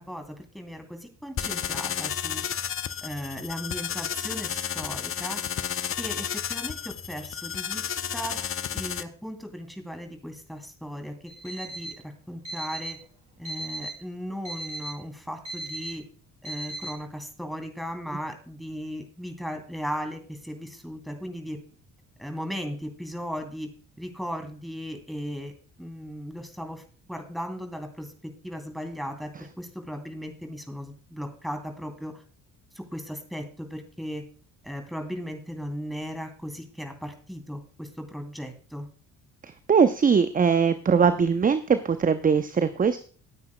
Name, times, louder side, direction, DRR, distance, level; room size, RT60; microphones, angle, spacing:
voice 1, 0.5-2.4 3.0-5.4 5.9-8.4 8.7-11.1 11.4-11.9 12.3-13.0 13.4-16.0 16.4-21.6 22.2-23.7 24.0-25.5 25.8-26.8 27.1-32.2 32.7-34.2 34.6-38.9, equal, ahead, 5 dB, 2.9 m, -37 dB
sound 1, 1.4-9.0, left 8 dB, 30° left, 0.7 m, -32 dB
Alarm, 11.3-12.0 12.5-13.0 13.5-14.0 14.5-15.0 15.5-16.0 16.5-17.0, right 2 dB, 90° right, 4.2 m, -36 dB
voice 2, 39.7-43.0, right 6 dB, 20° right, 12 dB, 0.7 m, -21 dB
18.5 x 9.4 x 2.2 m, 0.41 s
figure-of-eight pair, 50°, 47 cm